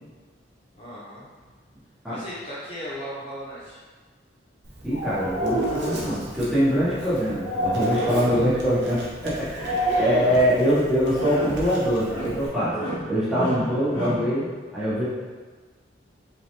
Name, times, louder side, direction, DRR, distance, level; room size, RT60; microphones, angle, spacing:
voice 1, 0.8-1.3 2.0-3.8 7.0-7.1 8.2-8.4 9.8-10.2, equal, 30° left, -8 dB, 1.2 m, -37 dB
Writing, 4.6-12.5, right 1 dB, 65° right, 0.9 m, -41 dB
voice 2, 4.8-12.7 13.1-15.0, equal, ahead, -12 dB, 0.9 m, -23 dB
sound 1, 4.9-6.1 7.4-8.6 9.5-10.5 11.1-11.6 12.0-12.4 12.7-13.1 13.3-14.2, right 1 dB, 75° left, 1.5 m, -27 dB
3.8 x 3.2 x 2.9 m, 1.4 s
head